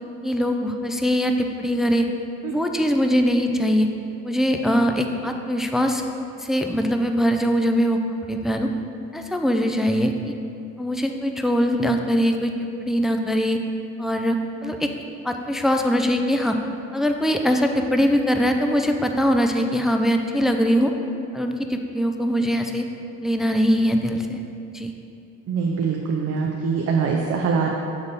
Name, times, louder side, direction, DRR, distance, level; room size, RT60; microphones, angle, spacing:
voice 1, 0.2-2.1 2.5-3.9 4.2-6.0 6.4-8.0 8.3-8.7 9.1-10.1 10.8-12.5 12.8-13.6 14.0-14.4 14.6-14.9 15.2-16.6 16.9-20.9 21.3-22.8 23.2-24.4 24.7-24.9, equal, ahead, 4 dB, 0.3 m, -22 dB
voice 2, 25.5-27.7, right 5 dB, 55° right, 0 dB, 0.6 m, -23 dB
7.9 x 3.4 x 4.0 m, 2.6 s
cardioid pair, 90°, 30 cm